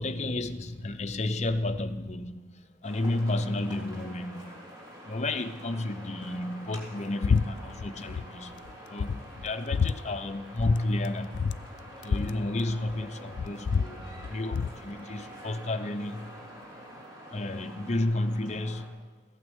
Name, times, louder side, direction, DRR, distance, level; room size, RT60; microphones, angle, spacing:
voice 1, 0.0-4.7 5.0-8.6 8.9-11.6 12.0-16.4 17.3-19.1, left 2 dB, 35° left, 0.7 m, -32 dB
sound 1, 2.8-18.9, equal, 25° right, 3.3 m, -47 dB
sound 2, 7.2-7.5 7.7-8.3 8.6-8.7 9.0-10.0 10.6-10.8 11.0-11.1 11.3-13.0 13.3-14.8, left 5 dB, 65° left, 0.4 m, -28 dB
15.0 x 9.4 x 8.1 m
head